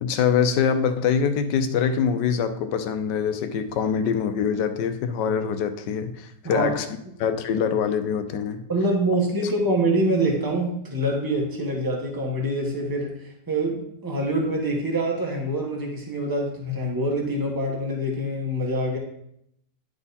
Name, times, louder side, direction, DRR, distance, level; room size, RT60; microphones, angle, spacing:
voice 1, 0.0-6.9 7.2-8.6, left 7 dB, 75° left, 10 dB, 1.2 m, -24 dB
voice 2, 8.7-19.0, right 1 dB, 15° right, 0 dB, 1.1 m, -25 dB
10.5 x 3.7 x 4.1 m, 0.75 s
omnidirectional pair, 2.0 m